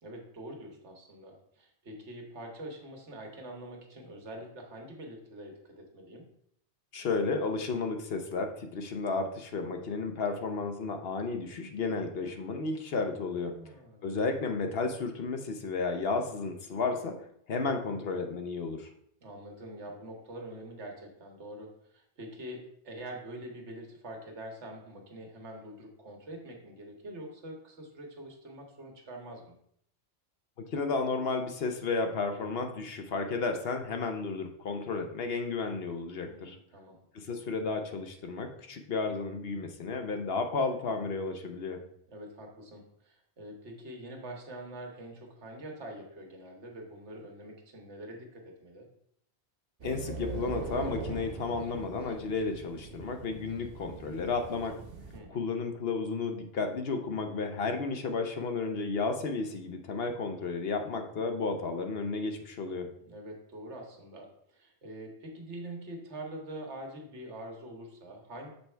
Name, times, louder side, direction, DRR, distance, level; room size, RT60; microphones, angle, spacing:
voice 1, 0.0-6.3 13.5-14.3 19.2-29.6 36.2-37.0 42.1-48.9 55.1-55.5 63.0-68.5, right 1 dB, 85° right, 1 dB, 1.5 m, -45 dB
voice 2, 6.9-13.6 14.0-17.2 17.5-18.9 30.6-36.6 37.1-41.8 49.8-54.8 55.3-62.9, left 4 dB, 65° left, 5 dB, 0.9 m, -32 dB
sound 1, 49.8-55.2, right 4 dB, 60° right, 1.0 m, -41 dB
6.9 x 3.4 x 4.4 m, 0.69 s
omnidirectional pair, 1.1 m